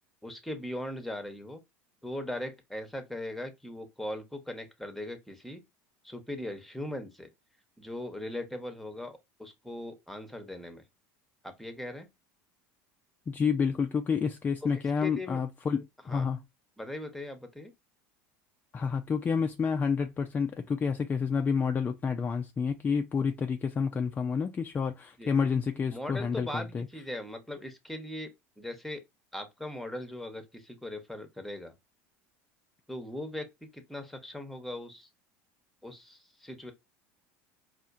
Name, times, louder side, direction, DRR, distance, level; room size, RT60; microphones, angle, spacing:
voice 1, 0.2-1.6 2.0-5.6 6.0-7.3 7.8-10.8 11.4-12.1 14.7-15.4 16.1-16.3 16.8-17.7 25.2-25.3 25.9-29.0 29.3-31.7 32.9-35.1 35.8-36.7, left 1 dB, ahead, 0.9 m, -39 dB
voice 2, 13.3-16.4 18.7-26.9, left 6 dB, 25° left, 0.4 m, -29 dB
4.2 x 2.4 x 2.4 m
supercardioid pair, 95°, 8 cm